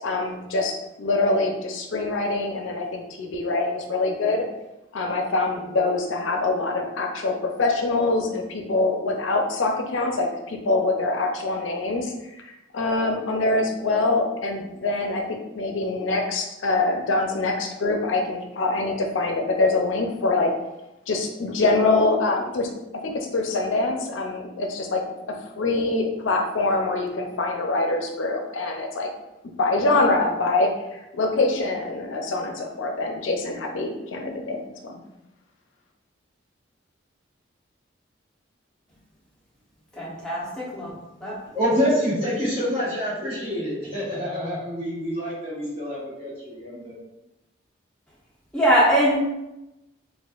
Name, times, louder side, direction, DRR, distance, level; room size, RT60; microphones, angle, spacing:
voice 1, 0.0-4.5 4.9-12.1 12.4-20.5 21.1-22.7 23.0-25.0 25.3-29.1 29.6-35.0, left 2 dB, 85° left, 3 dB, 0.5 m, -24 dB
voice 2, 39.9-41.4 48.5-49.2, equal, 5° left, -7 dB, 0.9 m, -22 dB
voice 3, 41.5-47.0, equal, 30° right, -9 dB, 1.4 m, -26 dB
4.2 x 2.4 x 2.4 m, 0.92 s
head